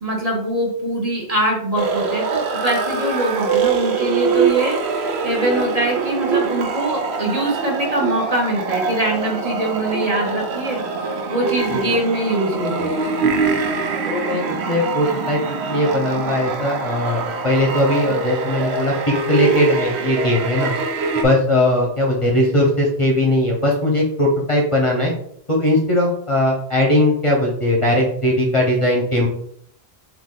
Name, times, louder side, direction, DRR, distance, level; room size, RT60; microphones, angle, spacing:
voice 1, 0.0-4.8 5.2-10.8 11.3-12.9, right 1 dB, 40° right, -1 dB, 1.1 m, -22 dB
sound 1, 1.8-21.2, right 5 dB, 85° right, 0.9 m, -24 dB
voice 2, 14.1-20.7 21.2-25.1 25.5-29.3, left 1 dB, 35° left, -1 dB, 0.7 m, -19 dB
4.1 x 2.8 x 3.7 m, 0.67 s
omnidirectional pair, 1.1 m